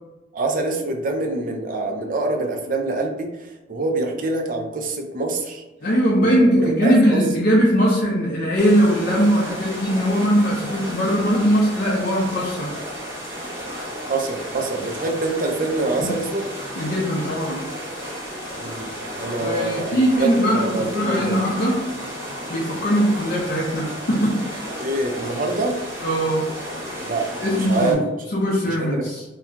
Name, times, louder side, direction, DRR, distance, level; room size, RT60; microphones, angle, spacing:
voice 1, 0.3-5.6 6.2-6.3 6.6-7.2 14.1-16.5 18.6-21.4 24.8-25.8 27.0-28.4 28.7-29.1, right 2 dB, 45° right, 3 dB, 0.4 m, -25 dB
voice 2, 5.8-12.7 16.0-16.1 16.8-17.7 19.4-21.8 22.5-24.4 26.0-26.5 27.4-28.0 28.3-29.2, equal, 50° left, -5 dB, 0.5 m, -20 dB
sound 1, 8.6-27.9, equal, 15° right, 0.9 m, -33 dB
2.3 x 2.2 x 3.7 m, 1.1 s
head